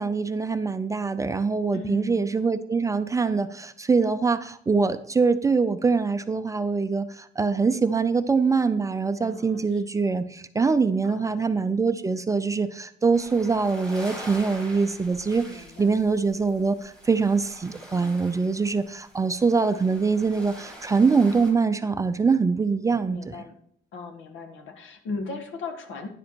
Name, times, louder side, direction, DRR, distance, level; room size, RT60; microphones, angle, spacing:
voice 1, 0.0-23.3, right 4 dB, 15° right, 10 dB, 0.4 m, -24 dB
voice 2, 1.7-2.3 9.2-9.8 11.0-11.4 15.4-16.0 23.1-23.6 23.9-26.1, left 3 dB, 90° left, 6 dB, 1.7 m, -37 dB
sound 1, 13.1-21.5, equal, 5° left, 2.5 m, -44 dB
10.5 x 7.6 x 4.5 m, 0.63 s
cardioid pair, 165°, 20 cm